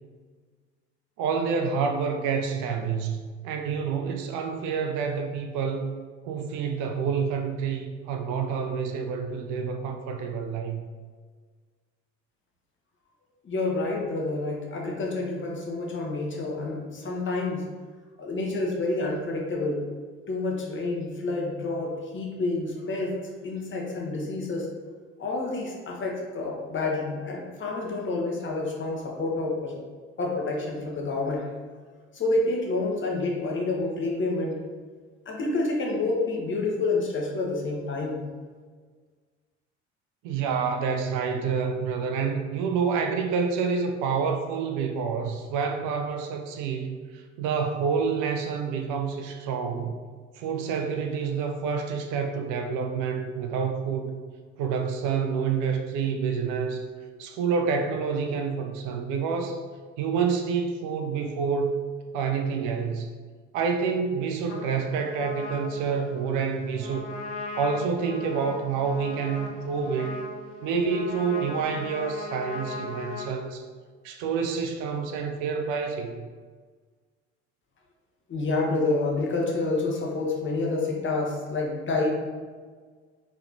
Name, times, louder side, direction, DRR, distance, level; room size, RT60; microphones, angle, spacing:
voice 1, 1.2-10.8 40.2-49.9 50.4-54.1 54.6-56.8 57.2-59.6 60.0-61.8 62.1-63.1 63.5-67.2 67.6-70.2 70.6-73.6 74.0-76.3, right 5 dB, 55° right, 4 dB, 0.5 m, -28 dB
voice 2, 13.4-17.7 18.2-19.8 20.3-24.7 25.2-29.7 30.2-31.5 32.1-34.6 35.3-38.2 78.3-82.1, left 2 dB, 35° left, -1 dB, 1.0 m, -28 dB
Trumpet, 64.5-73.3, left 3 dB, 80° left, 0.5 m, -38 dB
4.8 x 3.1 x 2.6 m, 1.5 s
figure-of-eight pair, 50°, 36 cm